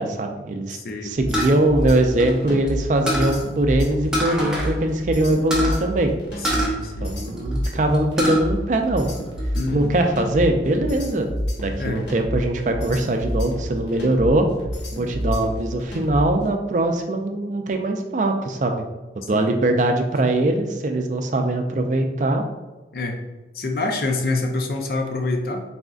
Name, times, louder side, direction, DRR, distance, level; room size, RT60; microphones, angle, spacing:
voice 1, 0.0-0.8 1.0-6.1 7.0-9.1 9.7-11.3 11.6-14.5 14.9-18.8 19.3-22.4, right 1 dB, 45° right, 5 dB, 0.4 m, -21 dB
voice 2, 0.7-1.1 6.5-7.1 9.5-10.0 11.8-12.0 19.3-19.5 22.9-23.2 23.5-25.6, left 2 dB, 55° left, 4 dB, 0.5 m, -26 dB
sound 1, 1.2-16.4, equal, 80° left, 0.9 m, -29 dB
sound 2, 1.3-2.7 3.1-3.4 4.1-4.7 5.0-5.1 5.5-5.8 6.4-7.6 7.9-8.4 8.9-9.6, equal, 5° right, 0.7 m, -24 dB
4.1 x 3.7 x 2.3 m, 1.2 s
head